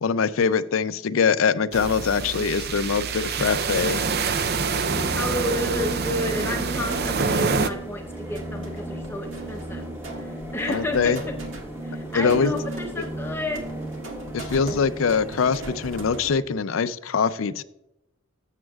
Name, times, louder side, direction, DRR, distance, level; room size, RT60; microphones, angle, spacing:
voice 1, 0.0-4.0 10.7-11.2 12.1-12.5 14.3-17.6, left 5 dB, 80° left, 14 dB, 0.5 m, -23 dB
sound 1, 1.7-7.7, right 4 dB, 50° right, 0.5 m, -26 dB
sound 2, 4.8-16.4, right 1 dB, 10° right, 1.4 m, -36 dB
voice 2, 5.1-9.8 10.1-11.2 11.8-13.7, left 1 dB, 10° left, 2 dB, 0.7 m, -31 dB
sound 3, 5.6-16.3, right 1 dB, 70° right, 1.7 m, -40 dB
12.5 x 7.4 x 2.4 m, 0.86 s
head